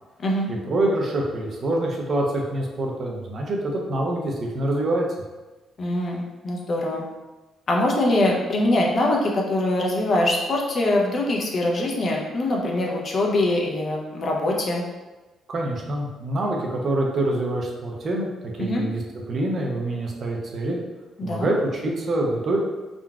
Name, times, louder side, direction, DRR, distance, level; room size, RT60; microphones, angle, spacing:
voice 1, 0.5-5.0 15.5-19.0 19.3-20.8 21.2-22.6, right 1 dB, 50° right, -1 dB, 0.6 m, -25 dB
voice 2, 5.8-7.0 7.7-14.8 18.6-18.8 21.2-21.5, left 1 dB, 50° left, -1 dB, 0.6 m, -23 dB
3.7 x 2.3 x 2.3 m, 1.2 s
cardioid pair, 90°, 0 cm